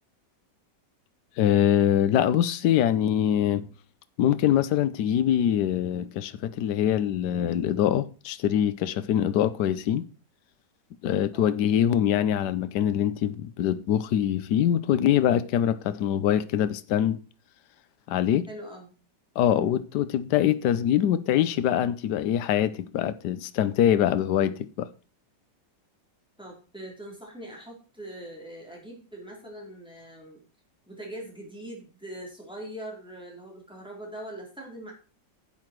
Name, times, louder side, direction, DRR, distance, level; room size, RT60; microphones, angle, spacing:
voice 1, 1.4-3.7 4.2-10.1 11.0-17.2 18.1-18.5 19.4-24.9, left 10 dB, 70° left, 1.3 m, -24 dB
voice 2, 18.5-18.9 19.5-19.8 26.4-30.4 30.9-34.9, right 1 dB, 5° right, 4.1 m, -42 dB
11.5 x 7.9 x 4.6 m
omnidirectional pair, 1.9 m